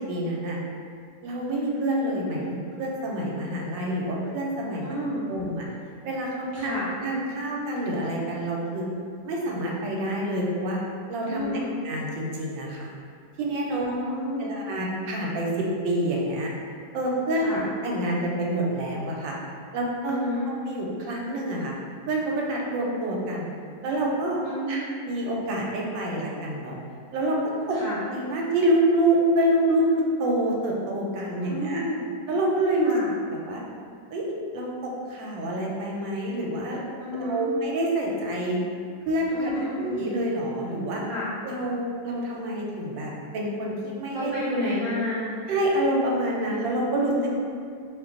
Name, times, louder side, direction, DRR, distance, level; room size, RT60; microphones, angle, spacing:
voice 1, 0.1-0.6 1.2-4.9 5.3-5.7 6.0-6.8 7.0-8.9 9.2-10.8 11.1-12.9 13.4-13.9 14.4-16.5 16.9-19.4 19.7-20.2 20.5-21.7 22.1-23.5 23.8-24.4 24.7-26.8 27.1-27.4 27.7-27.8 28.1-31.8 32.3-32.9 33.2-33.6 34.1-36.8 37.1-38.6 39.1-39.5 39.8-41.0 41.4-44.3 45.5-47.1, right 1 dB, 85° right, -2 dB, 1.3 m, -27 dB
voice 2, 4.8-5.3 6.5-6.9 11.2-11.7 13.7-14.5 17.3-17.6 20.0-20.4 24.4-24.9 27.7-28.0 31.4-32.0 32.8-33.1 37.0-37.5 39.3-40.1 41.1-41.3 44.1-45.2 47.0-47.4, left 1 dB, 45° right, -11 dB, 0.8 m, -31 dB
2.8 x 2.2 x 3.6 m, 2.2 s
omnidirectional pair, 2.0 m